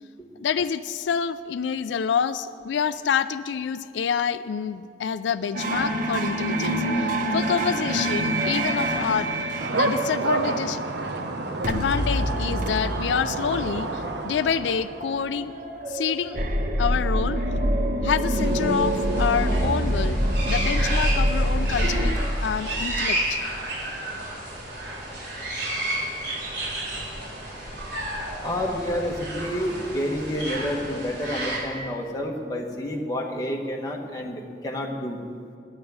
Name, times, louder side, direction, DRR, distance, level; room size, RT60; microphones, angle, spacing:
voice 1, 0.4-9.3 9.7-10.8 11.7-15.5 15.9-16.4 16.8-17.4 18.0-20.2 20.5-23.4, left 7 dB, 85° left, 13 dB, 0.4 m, -27 dB
sound 1, 5.5-11.3 11.6-22.1, right 1 dB, 45° right, 1.1 m, -26 dB
sound 2, 9.6-15.3, right 2 dB, 70° right, 0.9 m, -29 dB
sound 3, 18.3-31.6, right 1 dB, 90° right, 4.2 m, -32 dB
voice 2, 28.4-35.2, equal, 20° left, 0 dB, 1.3 m, -29 dB
9.8 x 9.6 x 9.3 m, 2.5 s
head